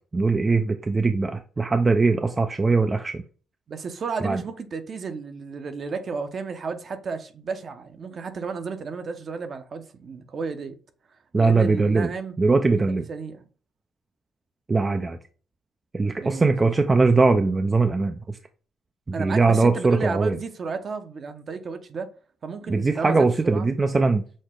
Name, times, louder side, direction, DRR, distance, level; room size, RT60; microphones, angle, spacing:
voice 1, 0.1-3.2 4.2-4.4 11.3-12.1 12.4-13.1 14.7-15.2 15.9-18.4 19.1-20.4 22.7-24.2, right 3 dB, 25° right, 0.4 m, -21 dB
voice 2, 3.7-10.8 11.4-12.4 12.7-13.4 16.2-16.7 19.1-22.1 22.4-23.7, right 5 dB, 50° right, 0.7 m, -33 dB
6.3 x 2.1 x 3.6 m
cardioid pair, 90°, 0 cm